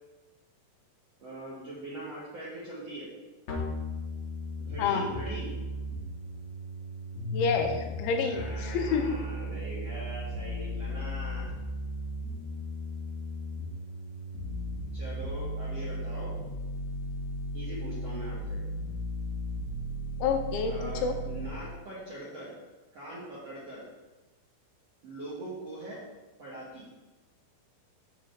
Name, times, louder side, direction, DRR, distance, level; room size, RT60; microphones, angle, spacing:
voice 1, 1.2-3.1 4.6-5.5 8.2-11.5 14.9-16.3 17.5-18.6 20.6-22.5 22.9-23.9 25.0-26.0 26.4-26.9, right 1 dB, 60° right, -9 dB, 1.7 m, -41 dB
sound 1, 3.5-21.5, left 1 dB, 65° left, 1.8 m, -36 dB
voice 2, 7.3-9.1 20.2-21.1, left 5 dB, 85° left, 5 dB, 3.0 m, -28 dB
7.4 x 4.0 x 6.5 m, 1.2 s
omnidirectional pair, 5.4 m